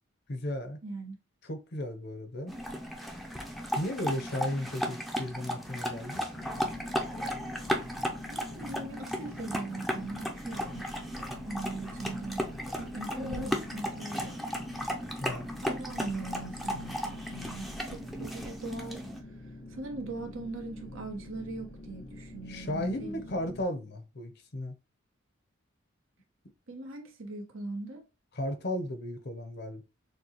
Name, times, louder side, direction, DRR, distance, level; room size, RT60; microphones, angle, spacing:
voice 1, 0.3-0.8 1.4-2.5 3.8-6.3 15.2-15.5 22.5-24.7 28.3-29.8, left 1 dB, 55° left, 0.8 m, -35 dB
voice 2, 0.8-1.2 4.0-4.2 8.3-10.9 11.4-14.4 15.6-19.1 19.7-23.2 26.7-28.0, right 2 dB, 85° right, 1.2 m, -40 dB
sound 1, 2.5-19.2, equal, ahead, 0.5 m, -35 dB
sound 2, 6.3-23.6, left 1 dB, 85° left, 1.4 m, -46 dB
6.3 x 2.3 x 2.9 m
head